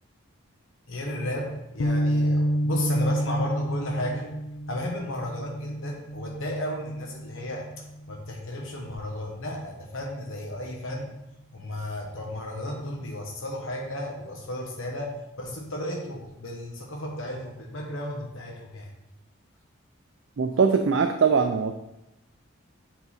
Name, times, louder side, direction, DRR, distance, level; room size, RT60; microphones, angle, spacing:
voice 1, 0.9-4.4 4.7-7.7 8.1-11.2 11.5-18.9, left 1 dB, 70° left, -1 dB, 1.0 m, -34 dB
sound 1, 1.8-8.2, equal, 85° left, 0.5 m, -29 dB
voice 2, 20.4-21.7, right 5 dB, 60° right, 5 dB, 0.4 m, -21 dB
7.1 x 3.9 x 4.2 m, 0.89 s
head